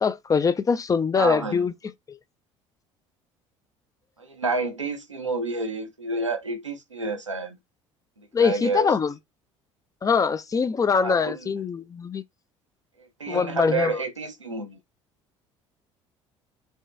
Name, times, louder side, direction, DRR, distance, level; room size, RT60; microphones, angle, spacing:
voice 1, 0.0-1.7 2.1-2.2 8.3-9.1 10.0-12.2 13.3-13.9, left 5 dB, 20° left, 0.6 m, -23 dB
voice 2, 1.2-1.7 4.2-7.6 8.2-8.9 10.9-11.5 13.0-14.8, right 3 dB, 85° right, 0.9 m, -29 dB
4.5 x 3.2 x 3.2 m
figure-of-eight pair, 60°, 15 cm